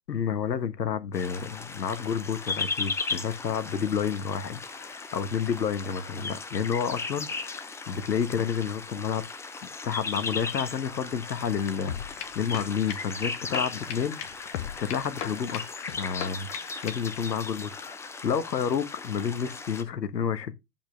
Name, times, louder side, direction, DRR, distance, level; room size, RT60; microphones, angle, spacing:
voice 1, 0.1-9.2 9.8-14.2 14.4-20.5, left 7 dB, 80° left, 1.3 m, -30 dB
sound 1, 1.1-19.8, left 4 dB, 5° left, 0.5 m, -37 dB
sound 2, 11.9-17.2, left 10 dB, 50° left, 1.7 m, -38 dB
10.5 x 5.3 x 3.2 m
hypercardioid pair, 110°, 49 cm